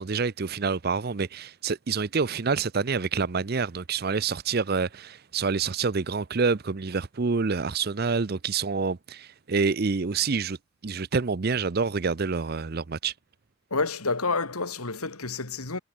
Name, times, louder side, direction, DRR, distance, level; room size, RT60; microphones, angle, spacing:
voice 1, 0.0-10.6 10.8-13.1, right 5 dB, 45° right, 0.6 m, -27 dB
voice 2, 13.7-15.8, left 3 dB, 85° left, 3.0 m, -29 dB
head